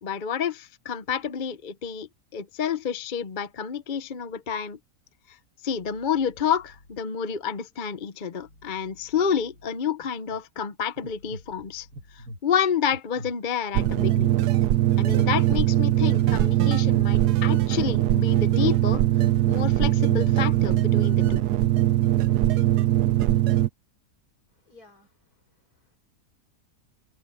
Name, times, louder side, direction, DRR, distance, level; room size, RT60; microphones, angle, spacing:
voice 1, 0.0-4.8 5.6-11.9 12.1-14.3 15.0-19.0 19.4-21.4, left 7 dB, 40° left, 0.8 m, -29 dB
sound 1, 5.7-7.0 8.3-9.7 11.0-12.3 13.7-15.0, left 1 dB, 80° left, 7.5 m, -55 dB
sound 2, 10.0-10.4 11.0-11.4 11.9-12.4 12.9-13.3 13.9-14.3 14.9-15.3 15.9-16.2 16.9-17.3 17.9-18.3 19.0-19.3 19.9-20.3 20.9-21.3, equal, 60° right, 2.3 m, -39 dB
sound 3, 13.7-23.7, right 14 dB, 80° right, 1.3 m, -21 dB
voice 2, 24.5-26.0, left 3 dB, 65° left, 6.2 m, -57 dB
omnidirectional pair, 1.7 m